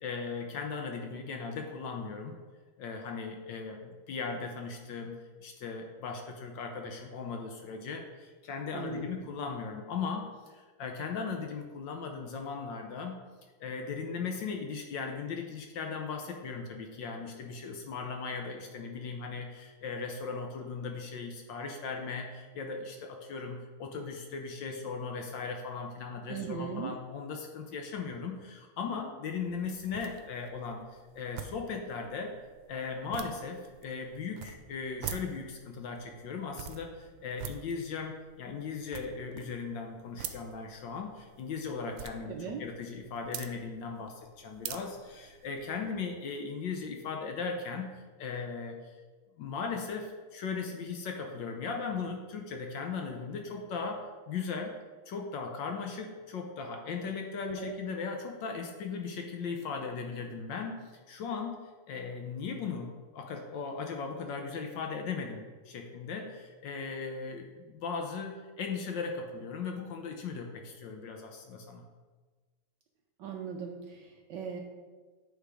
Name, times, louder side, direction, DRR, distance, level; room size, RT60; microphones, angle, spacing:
voice 1, 0.0-2.4 2.8-13.2 13.6-32.3 32.7-47.9 48.2-48.9 49.4-54.7 55.1-61.6 61.9-71.8, left 5 dB, 65° left, 3 dB, 1.3 m, -38 dB
voice 2, 8.7-9.1 26.3-26.9 42.3-42.6 57.5-57.7 73.2-74.6, right 6 dB, 70° right, 2 dB, 1.1 m, -38 dB
sound 1, 29.4-45.9, right 9 dB, 90° right, 1.5 m, -47 dB
9.4 x 3.5 x 4.8 m, 1.4 s
omnidirectional pair, 2.4 m